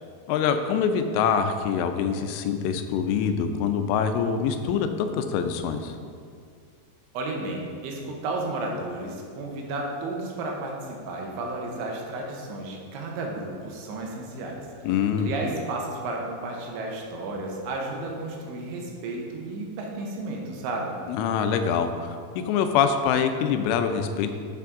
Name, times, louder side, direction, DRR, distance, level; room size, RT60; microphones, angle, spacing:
voice 1, 0.3-6.0 14.8-15.3 21.1-22.2 22.5-24.3, left 7 dB, 85° left, 8 dB, 3.0 m, -24 dB
voice 2, 7.1-14.7 15.2-21.0, right 2 dB, 80° right, 0 dB, 3.1 m, -33 dB
8.3 x 6.8 x 3.7 m, 2.2 s
omnidirectional pair, 5.5 m